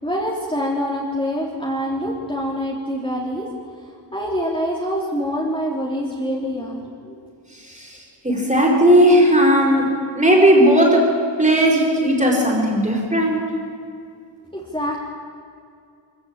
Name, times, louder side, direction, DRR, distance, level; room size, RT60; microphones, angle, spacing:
voice 1, 0.0-3.5 4.1-7.2 14.5-15.1, equal, 10° left, -4 dB, 3.3 m, -25 dB
voice 2, 8.2-13.4, equal, 15° right, 0 dB, 5.1 m, -16 dB
23.5 x 15.0 x 8.9 m, 2.3 s
wide cardioid pair, 85°, 45 cm